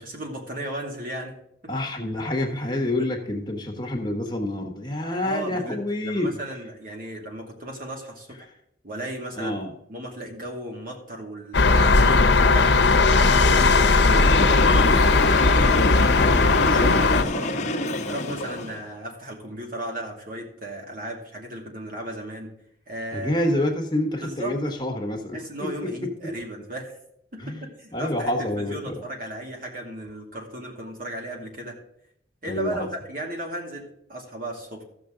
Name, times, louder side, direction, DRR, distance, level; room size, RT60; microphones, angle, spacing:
voice 1, 0.0-1.4 1.6-2.1 2.7-3.1 5.2-8.5 8.8-9.5 9.9-15.3 16.6-17.6 18.0-22.5 22.9-23.3 24.2-24.6 25.3-27.0 27.3-31.8 32.4-34.8, right 1 dB, 50° right, 1 dB, 2.5 m, -36 dB
voice 2, 1.7-6.4 9.4-9.7 15.9-17.0 23.1-26.3 27.4-27.6 27.9-29.0 32.5-32.9, left 1 dB, 25° left, 2 dB, 1.4 m, -28 dB
sound 1, 11.5-17.2, left 3 dB, 85° left, 0.9 m, -17 dB
Train, 13.9-18.9, left 1 dB, 40° left, 1.1 m, -28 dB
14.5 x 6.7 x 3.8 m, 0.75 s
head